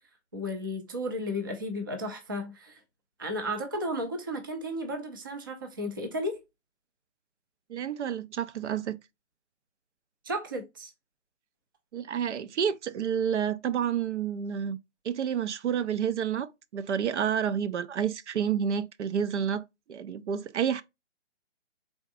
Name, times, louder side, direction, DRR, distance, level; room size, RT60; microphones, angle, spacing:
voice 1, 0.3-2.8 3.2-6.4 10.2-10.9, equal, 20° right, 0.4 m, -34 dB
voice 2, 7.7-9.0 11.9-14.8 15.0-20.8, right 8 dB, 75° right, 0.6 m, -29 dB
3.9 x 3.5 x 2.5 m
hypercardioid pair, 150°, 35 cm